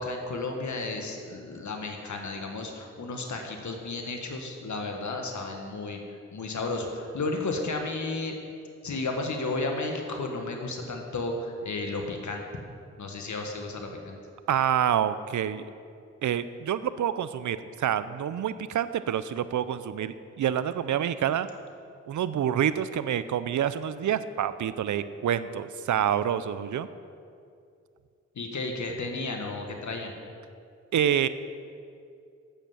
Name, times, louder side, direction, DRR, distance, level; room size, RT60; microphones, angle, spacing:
voice 1, 0.0-6.0 6.3-8.3 8.8-12.5 13.0-14.2 28.4-30.1, left 3 dB, 75° left, 3 dB, 1.6 m, -33 dB
voice 2, 14.5-15.7 16.2-21.5 22.1-26.9 30.9-31.3, right 9 dB, 85° right, 14 dB, 0.5 m, -27 dB
9.0 x 8.0 x 7.3 m, 2.4 s
cardioid pair, 45°, 29 cm